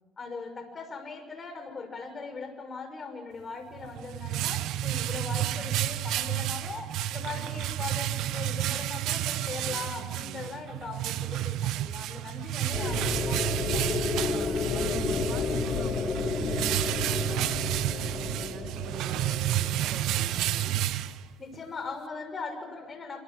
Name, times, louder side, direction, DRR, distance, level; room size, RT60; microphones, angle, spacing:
voice 1, 0.2-13.8 21.4-23.2, left 4 dB, 35° left, 7 dB, 6.2 m, -40 dB
sound 1, 3.7-21.6, right 13 dB, 80° right, 1.0 m, -31 dB
voice 2, 9.6-10.6 14.2-20.8, right 6 dB, 65° right, 3 dB, 3.8 m, -45 dB
sound 2, 12.7-20.8, left 5 dB, 50° left, 2.5 m, -32 dB
27.0 x 26.5 x 6.3 m, 1.3 s
cardioid pair, 95°, 0 cm